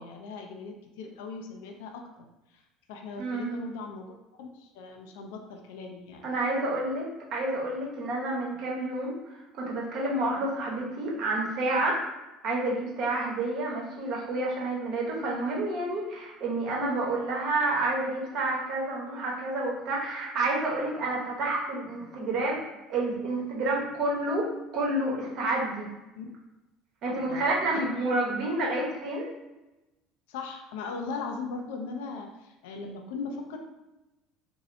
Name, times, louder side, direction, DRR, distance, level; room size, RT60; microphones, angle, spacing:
voice 1, 0.0-2.6 2.9-6.3 10.3-10.5 26.1-26.3 27.3-27.9 30.3-33.6, left 4 dB, 80° left, 3 dB, 0.4 m, -39 dB
voice 2, 3.2-3.5 6.2-7.1 7.3-12.0 12.4-22.6 22.9-25.9 27.0-29.3, right 2 dB, 60° right, -2 dB, 1.0 m, -29 dB
3.0 x 2.6 x 2.6 m, 1.0 s
supercardioid pair, 85°, 0 cm